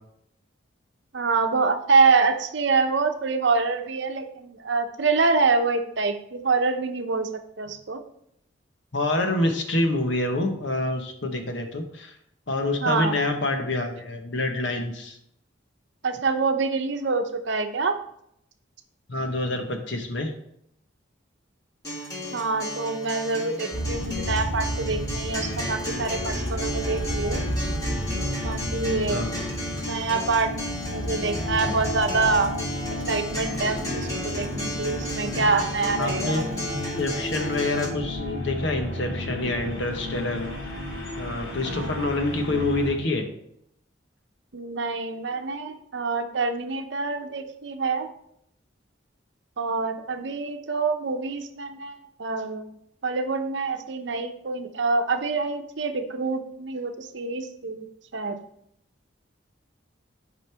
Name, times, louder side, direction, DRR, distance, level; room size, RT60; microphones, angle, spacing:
voice 1, 1.1-7.3 7.6-8.0 12.8-13.2 16.0-18.0 22.3-27.4 28.4-29.2 29.8-30.5 30.9-32.5 33.1-36.4 41.7-42.0 44.5-48.1 49.6-52.8 53.0-57.9 58.1-58.4, right 4 dB, 70° right, 7 dB, 0.8 m, -26 dB
voice 2, 8.9-12.1 12.5-15.2 19.1-20.3 29.1-29.5 36.0-40.5 41.2-43.3, left 2 dB, 70° left, 4 dB, 1.1 m, -27 dB
Acoustic guitar, 21.8-37.9, equal, 20° left, 1.7 m, -34 dB
sound 1, 23.7-42.9, left 1 dB, 85° left, 3.4 m, -32 dB
9.5 x 5.2 x 3.4 m, 0.74 s
head